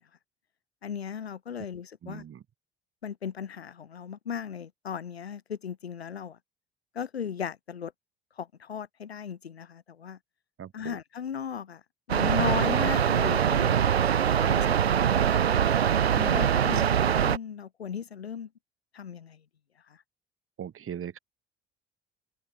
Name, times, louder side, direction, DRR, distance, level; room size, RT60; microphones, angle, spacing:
voice 1, 0.8-2.2 3.0-6.4 6.9-7.9 8.4-10.2 10.7-11.8 12.1-13.8 14.4-14.8 15.0-15.4 16.1-18.5 18.9-19.4 19.9-20.0, left 7 dB, 85° left, 2.7 m, -36 dB
voice 2, 2.0-2.4 10.6-11.0 20.6-21.2, right 9 dB, 45° right, 6.6 m, -39 dB
sound 1, 12.1-17.4, right 8 dB, 85° right, 1.0 m, -23 dB
figure-of-eight pair, 55°, 31 cm